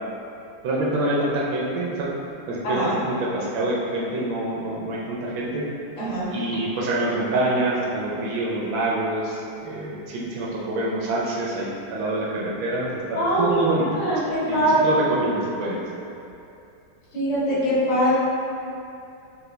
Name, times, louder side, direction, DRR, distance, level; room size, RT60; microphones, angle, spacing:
voice 1, 0.6-2.1 2.5-5.6 6.3-14.0 14.5-15.8, right 1 dB, 75° right, -5 dB, 1.3 m, -26 dB
voice 2, 13.1-15.0 17.1-18.1, right 1 dB, 75° left, -11 dB, 2.2 m, -22 dB
5.5 x 2.2 x 3.2 m, 2.7 s
omnidirectional pair, 2.3 m